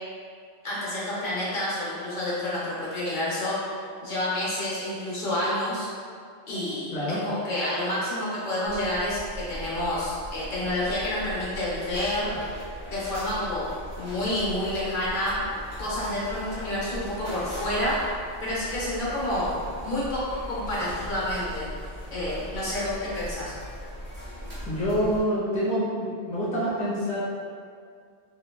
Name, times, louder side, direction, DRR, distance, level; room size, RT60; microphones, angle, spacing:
voice 1, 0.6-3.6 4.0-5.9 6.5-12.4 12.9-13.7 13.9-15.4 15.8-18.0 18.4-19.5 19.8-21.7 22.1-23.5, left 1 dB, 55° left, -7 dB, 0.7 m, -29 dB
voice 2, 6.9-7.2 24.7-27.2, equal, 10° left, -9 dB, 0.4 m, -26 dB
sound 1, 8.6-25.2, equal, 35° right, 0.7 m, -39 dB
3.0 x 2.1 x 2.2 m, 2.2 s
omnidirectional pair, 1.1 m